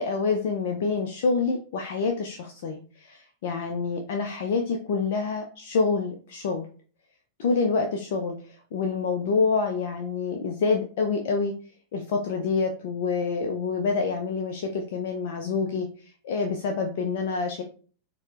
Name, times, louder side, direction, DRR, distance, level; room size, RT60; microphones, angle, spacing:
voice 1, 0.0-6.7 7.4-11.5 11.9-15.9 16.2-17.6, left 4 dB, 55° left, 4 dB, 0.4 m, -27 dB
4.2 x 2.1 x 2.4 m, 0.39 s
figure-of-eight pair, 90°, 0 cm